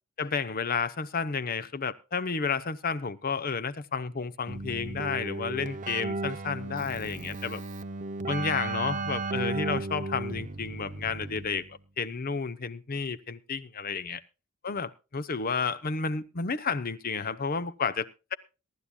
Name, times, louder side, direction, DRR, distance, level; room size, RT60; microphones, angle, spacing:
voice 1, 0.2-7.6 8.3-11.7 12.0-14.2 14.6-18.3, left 5 dB, 40° left, 0.8 m, -31 dB
Keyboard (musical), 4.5-11.8, right 2 dB, 35° right, 0.7 m, -35 dB
22.5 x 11.5 x 2.3 m
head